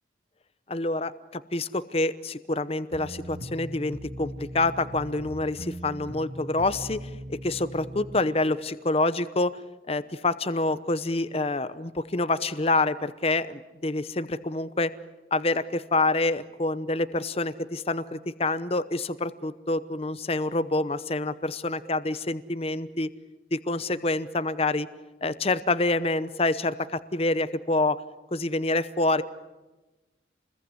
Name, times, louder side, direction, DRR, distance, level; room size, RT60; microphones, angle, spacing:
voice 1, 0.7-9.5 9.9-14.9 15.3-23.1 23.5-24.9 25.2-28.0 28.3-29.2, left 2 dB, 30° left, 13 dB, 0.8 m, -27 dB
sound 1, 2.9-8.2, equal, 65° right, 2.0 m, -40 dB
28.5 x 21.5 x 9.7 m, 1.1 s
head